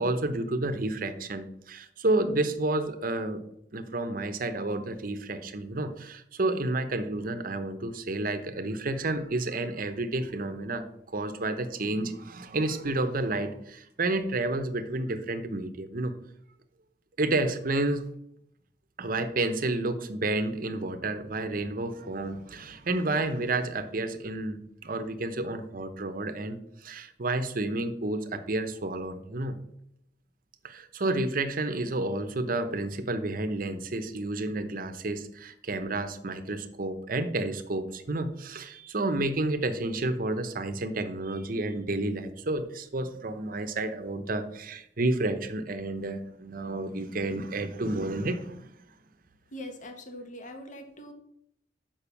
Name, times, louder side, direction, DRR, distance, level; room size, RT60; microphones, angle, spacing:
voice 1, 0.0-3.4 3.7-16.1 17.2-18.0 19.0-29.6 30.6-48.7, right 2 dB, 50° right, 9 dB, 0.8 m, -30 dB
voice 2, 49.5-51.1, left 1 dB, 45° left, 5 dB, 1.2 m, -42 dB
6.9 x 5.3 x 7.1 m, 0.75 s
head